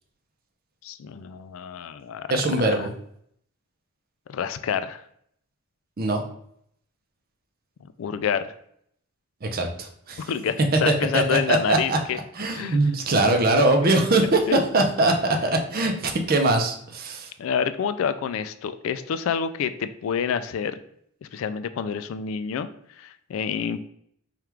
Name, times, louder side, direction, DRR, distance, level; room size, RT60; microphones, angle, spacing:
voice 1, 0.8-2.3 2.8-2.9 4.3-5.0 8.0-8.5 10.2-12.2 12.5-12.8 14.5-14.6 17.4-20.8 21.2-22.7 23.0-23.9, left 7 dB, 70° left, 13 dB, 0.3 m, -28 dB
voice 2, 2.3-2.9 6.0-6.2 9.4-10.2 10.9-12.0 12.4-17.3, right 2 dB, 45° right, 3 dB, 0.6 m, -22 dB
3.4 x 2.4 x 4.4 m, 0.69 s
head